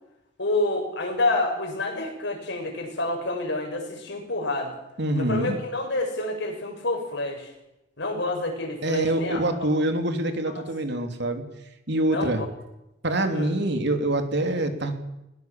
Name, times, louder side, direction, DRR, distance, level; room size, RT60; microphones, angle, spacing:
voice 1, 0.4-4.8 5.1-7.5 8.0-9.7 12.1-12.5 13.3-13.5, left 2 dB, 65° left, 2 dB, 7.6 m, -28 dB
voice 2, 5.0-5.6 8.8-11.4 11.9-12.4 13.0-15.0, right 1 dB, 60° right, 6 dB, 3.2 m, -25 dB
21.5 x 20.5 x 7.6 m, 0.90 s
head